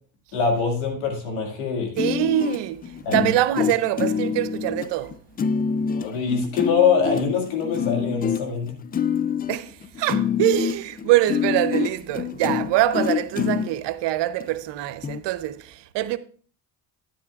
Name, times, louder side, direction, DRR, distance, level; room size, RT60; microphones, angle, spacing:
voice 1, 0.3-2.0 3.1-3.3 5.9-8.8, left 6 dB, 80° left, 2.2 m, -23 dB
sound 1, 2.0-13.8 14.4-14.5 15.0-15.2, left 7 dB, 25° left, 0.3 m, -26 dB
voice 2, 2.0-2.8 3.1-5.2 9.5-9.7 10.0-16.2, right 14 dB, 65° right, 0.8 m, -24 dB
10.0 x 10.0 x 2.4 m
supercardioid pair, 65°, 45 cm